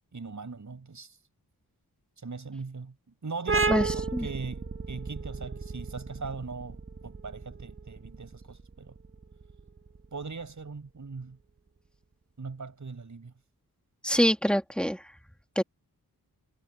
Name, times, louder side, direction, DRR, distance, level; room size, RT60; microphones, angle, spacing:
voice 1, 0.1-1.2 2.2-3.0 3.2-9.0 10.1-11.4 12.4-13.3, right 4 dB, 50° right, 7.0 m, -40 dB
sound 1, 3.5-10.8, right 4 dB, 35° right, 1.7 m, -33 dB
voice 2, 14.0-15.0 15.6-15.7, equal, 5° left, 2.7 m, -24 dB
wide cardioid pair, 100°, 37 cm